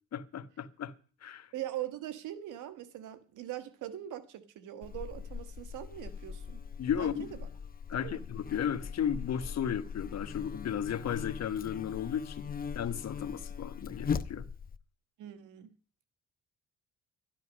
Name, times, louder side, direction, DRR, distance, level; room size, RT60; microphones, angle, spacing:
voice 1, 0.1-0.9 1.2-1.5 6.8-7.3 7.9-12.4 12.7-14.5, left 8 dB, 60° left, 1.3 m, -34 dB
voice 2, 1.5-6.6 7.0-7.3 8.0-8.2 15.2-15.7, right 12 dB, 90° right, 1.4 m, -41 dB
Buzz, 4.8-14.8, left 6 dB, 30° left, 0.7 m, -40 dB
12.5 x 10.5 x 6.3 m
cardioid pair, 90°, 30 cm